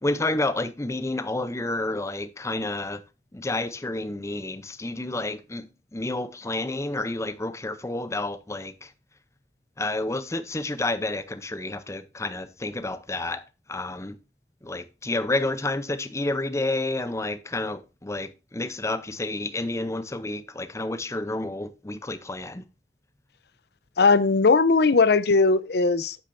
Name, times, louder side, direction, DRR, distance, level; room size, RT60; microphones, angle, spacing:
voice 1, 0.0-3.0 3.3-8.9 9.8-13.4 13.7-14.2 14.6-22.6, left 2 dB, 15° left, 0.6 m, -30 dB
voice 2, 24.0-26.2, left 4 dB, 60° left, 0.6 m, -19 dB
8.5 x 8.4 x 2.6 m
head